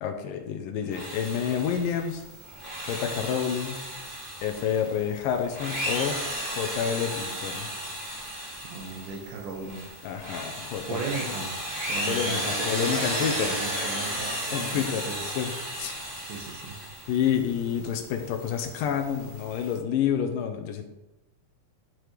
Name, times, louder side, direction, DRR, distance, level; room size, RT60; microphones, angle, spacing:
voice 1, 0.0-2.2 2.9-3.8 4.4-6.2 6.6-7.7 10.0-11.0 11.3-11.4 12.1-13.6 14.5-16.0 17.1-20.8, left 8 dB, 80° left, 5 dB, 2.3 m, -29 dB
Drill, 0.8-2.0 2.5-4.9 5.4-9.1 9.6-17.1, equal, 20° right, 1.5 m, -33 dB
sound 1, 0.9-19.8, right 2 dB, 55° left, 2.1 m, -49 dB
voice 2, 8.7-10.0 10.9-11.6 11.9-15.2 16.3-16.8, right 4 dB, 70° right, 1 dB, 2.3 m, -37 dB
11.5 x 4.6 x 3.3 m, 0.96 s
omnidirectional pair, 4.1 m